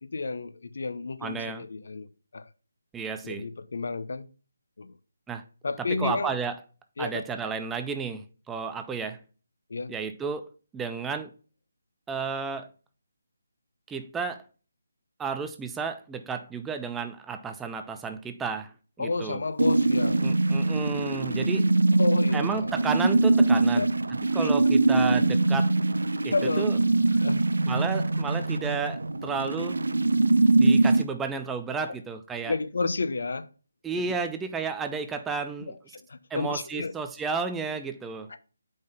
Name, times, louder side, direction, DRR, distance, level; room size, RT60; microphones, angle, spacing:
voice 1, 0.0-2.1 2.3-2.5 3.2-4.3 4.8-4.9 5.6-6.4 7.0-7.2 9.7-9.9 19.0-20.2 22.0-22.7 23.7-23.9 24.3-24.5 26.3-26.7 27.2-27.5 31.9-32.0 32.4-33.5 34.0-34.1 35.7-36.9 38.3-38.4, left 3 dB, 60° left, 0.6 m, -31 dB
voice 2, 1.2-1.6 2.9-3.5 5.3-5.4 6.0-6.6 7.0-9.2 9.9-11.3 12.1-12.7 13.9-14.4 15.2-19.4 20.2-21.7 22.3-23.9 24.3-25.7 26.2-26.8 27.7-29.8 30.6-32.5 33.8-35.7 36.3-38.3, right 5 dB, 10° right, 0.4 m, -32 dB
sound 1, 19.6-31.0, right 2 dB, 70° right, 0.6 m, -23 dB
5.2 x 3.8 x 5.3 m
figure-of-eight pair, 150°, 0 cm